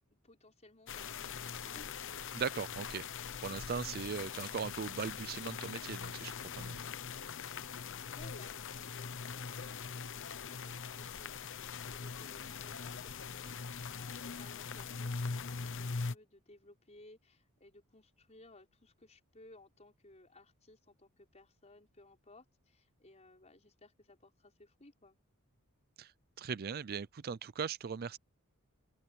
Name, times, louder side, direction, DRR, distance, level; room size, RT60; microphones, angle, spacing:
voice 1, 0.2-1.9 7.8-25.2, left 2 dB, 30° left, 5.3 m, -60 dB
sound 1, 0.9-16.2, left 5 dB, 60° left, 0.9 m, -42 dB
voice 2, 2.3-3.0 3.4-6.8 26.0-26.1 26.4-28.2, right 6 dB, 45° right, 0.4 m, -39 dB
open air
head